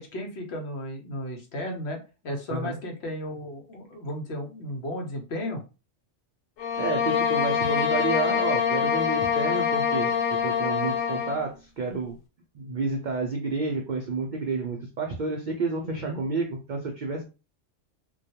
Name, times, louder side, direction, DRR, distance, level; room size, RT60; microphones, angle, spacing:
voice 1, 0.0-5.6 15.8-16.2, left 1 dB, 60° left, 3 dB, 0.9 m, -34 dB
sound 1, 6.6-11.4, left 7 dB, 85° left, 1.0 m, -25 dB
voice 2, 6.8-10.1 10.4-12.2 12.5-17.2, right 3 dB, 70° right, 2 dB, 0.4 m, -30 dB
2.2 x 2.2 x 2.7 m, 0.31 s
omnidirectional pair, 1.3 m